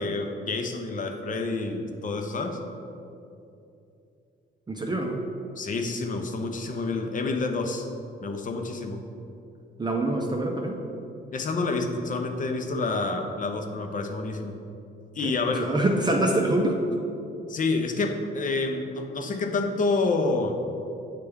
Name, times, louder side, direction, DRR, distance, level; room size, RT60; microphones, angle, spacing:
voice 1, 0.0-2.6 5.6-7.9 8.2-9.0 11.3-14.5 15.1-15.7 17.5-20.6, left 3 dB, 40° left, 4 dB, 0.6 m, -28 dB
voice 2, 4.7-5.2 9.8-10.8 15.2-15.3 15.6-16.8, right 1 dB, 20° right, 0 dB, 0.5 m, -25 dB
8.2 x 3.3 x 3.5 m, 2.7 s
cardioid pair, 90°, 20 cm